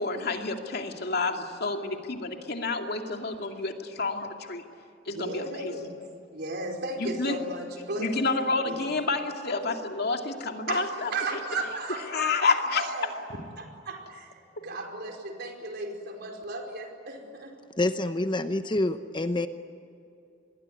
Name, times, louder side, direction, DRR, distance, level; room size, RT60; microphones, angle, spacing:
voice 1, 0.0-4.6 5.1-5.8 7.0-7.4 8.0-11.4 12.1-12.8, left 3 dB, 60° left, 4 dB, 2.4 m, -29 dB
voice 2, 5.1-5.9 6.3-8.3 8.7-8.9 10.7-13.1 13.6-14.3 14.6-17.6, right 2 dB, 60° right, 3 dB, 4.8 m, -35 dB
voice 3, 17.8-19.5, left 2 dB, 25° left, 9 dB, 0.8 m, -27 dB
27.0 x 21.5 x 9.8 m, 2.5 s
head